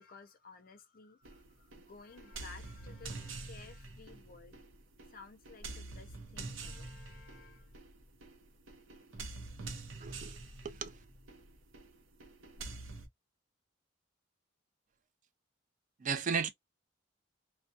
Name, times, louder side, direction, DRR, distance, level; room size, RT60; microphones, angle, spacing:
voice 1, 0.0-4.6 5.1-7.8, left 4 dB, 45° left, 0.5 m, -55 dB
sound 1, 1.2-13.1, right 3 dB, 75° right, 0.6 m, -47 dB
voice 2, 10.0-11.0 16.0-16.5, right 6 dB, 40° right, 0.3 m, -35 dB
2.3 x 2.1 x 2.5 m
head